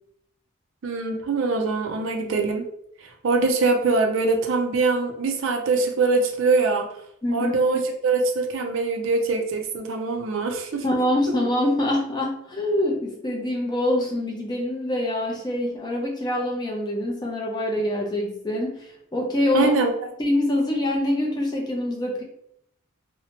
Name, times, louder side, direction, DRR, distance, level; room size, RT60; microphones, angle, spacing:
voice 1, 0.8-2.6 3.0-6.9 7.3-10.8 19.5-19.9, right 3 dB, 65° right, 4 dB, 0.4 m, -23 dB
voice 2, 7.2-7.5 10.8-19.7 20.2-22.2, left 1 dB, 20° left, 0 dB, 0.4 m, -25 dB
2.7 x 2.1 x 2.8 m, 0.73 s
head